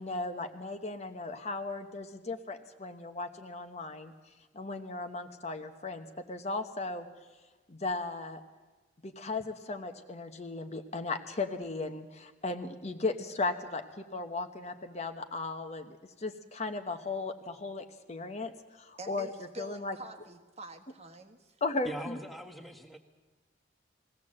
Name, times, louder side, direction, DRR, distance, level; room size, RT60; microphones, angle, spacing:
voice 1, 0.0-4.1 4.5-7.1 7.7-8.4 9.0-18.5 18.8-19.3 19.6-20.0 21.6-22.2, left 3 dB, 35° left, 7 dB, 1.0 m, -36 dB
voice 2, 19.0-21.6, right 1 dB, 35° right, 5 dB, 1.3 m, -47 dB
voice 3, 21.8-23.0, equal, ahead, 5 dB, 1.5 m, -41 dB
21.0 x 16.5 x 7.7 m, 1.2 s
head